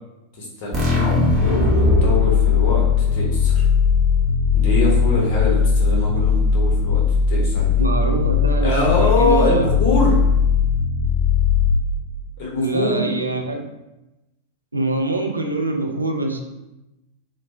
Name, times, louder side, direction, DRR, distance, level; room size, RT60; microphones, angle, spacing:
voice 1, 0.3-2.9 3.1-3.7 4.5-7.0 7.3-7.8 8.6-10.2 12.4-13.1, left 2 dB, 45° left, -3 dB, 0.9 m, -23 dB
sound 1, 0.7-12.2, left 5 dB, 25° right, 0.7 m, -18 dB
voice 2, 7.8-9.7 12.5-13.7 14.7-16.4, right 2 dB, 80° right, 3 dB, 0.3 m, -24 dB
2.3 x 2.1 x 3.1 m, 0.98 s
figure-of-eight pair, 90°, 0 cm